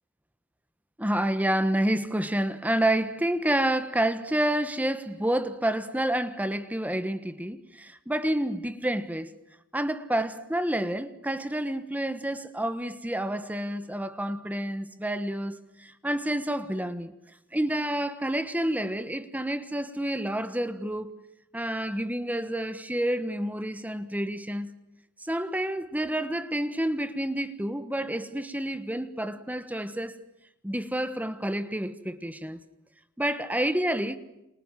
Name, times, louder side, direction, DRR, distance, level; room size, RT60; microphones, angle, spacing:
voice 1, 1.0-9.3 9.7-17.1 17.5-21.1 21.5-24.7 25.3-30.1 30.6-32.6 33.2-34.2, right 1 dB, 5° right, 1.2 m, -29 dB
29.0 x 27.0 x 7.5 m
head